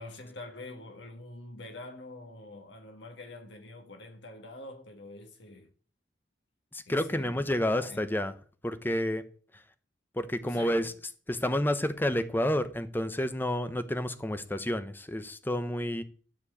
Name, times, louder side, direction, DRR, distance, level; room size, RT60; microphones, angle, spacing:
voice 1, 0.0-5.7 6.9-8.0 10.4-10.9, left 2 dB, 65° left, 1.6 m, -45 dB
voice 2, 6.7-8.3 8.6-9.2 10.1-10.9 11.3-16.0, left 1 dB, 10° left, 0.8 m, -30 dB
12.5 x 4.5 x 8.4 m
head